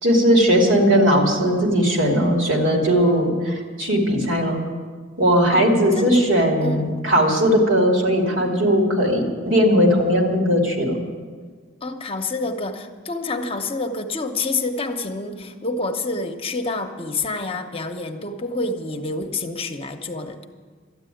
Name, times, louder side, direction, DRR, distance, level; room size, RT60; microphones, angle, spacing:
voice 1, 0.0-4.6 5.2-11.0, equal, 70° right, 1 dB, 2.8 m, -18 dB
voice 2, 11.8-20.5, left 3 dB, 30° left, 5 dB, 0.9 m, -28 dB
13.0 x 8.9 x 9.1 m, 1.5 s
head